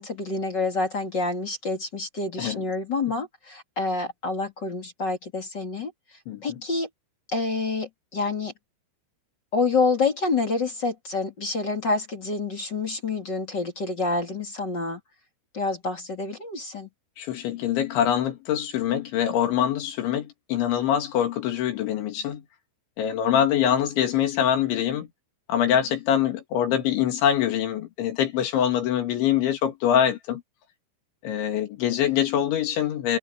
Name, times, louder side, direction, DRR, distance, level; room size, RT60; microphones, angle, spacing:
voice 1, 0.0-5.9 6.4-6.9 7.3-8.5 9.5-15.0 15.5-16.9, left 3 dB, 30° left, 2.1 m, -27 dB
voice 2, 6.3-6.6 17.2-22.4 23.0-25.1 25.5-30.4 31.2-33.2, left 10 dB, 70° left, 4.4 m, -24 dB
omnidirectional pair, 5.8 m